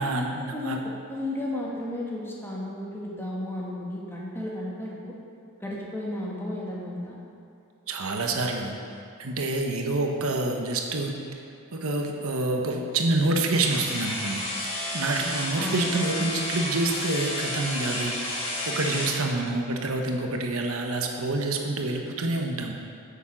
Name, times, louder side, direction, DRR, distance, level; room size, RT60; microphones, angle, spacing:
voice 1, 0.0-0.8 7.9-8.7 9.2-11.2 11.7-14.4 14.9-18.1 18.7-22.7, right 2 dB, 70° right, 2 dB, 1.0 m, -27 dB
voice 2, 0.5-5.1 5.6-7.2 15.5-15.9, left 1 dB, 10° left, -4 dB, 1.5 m, -33 dB
sound 1, 13.5-19.2, left 1 dB, 25° left, 2.6 m, -31 dB
8.7 x 7.1 x 5.8 m, 2.6 s
head